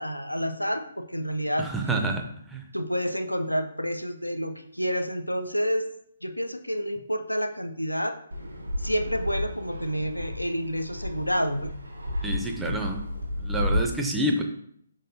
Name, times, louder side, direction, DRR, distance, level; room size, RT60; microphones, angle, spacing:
voice 1, 0.0-1.7 2.7-5.9 6.2-8.2 8.8-11.7, equal, 90° left, 8 dB, 0.4 m, -29 dB
voice 2, 1.6-2.6 12.2-13.0 13.4-14.4, right 1 dB, 5° right, 2 dB, 0.5 m, -28 dB
Fixed-wing aircraft airplane, 8.3-13.8, left 1 dB, 80° right, 0.9 m, -32 dB
5.2 x 3.8 x 2.6 m, 0.69 s
figure-of-eight pair, 135°, 0 cm